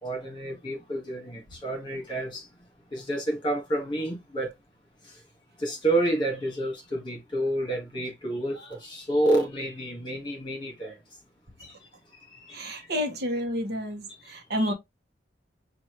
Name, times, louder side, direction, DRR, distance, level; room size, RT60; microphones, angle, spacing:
voice 1, 0.0-2.5 2.9-4.5 5.0-5.1 5.6-11.0 11.6-11.8 12.1-12.9 14.6-14.7, right 1 dB, 25° left, 1.9 m, -29 dB
voice 2, 12.5-14.7, equal, 55° right, 1.1 m, -30 dB
6.0 x 2.6 x 3.2 m
head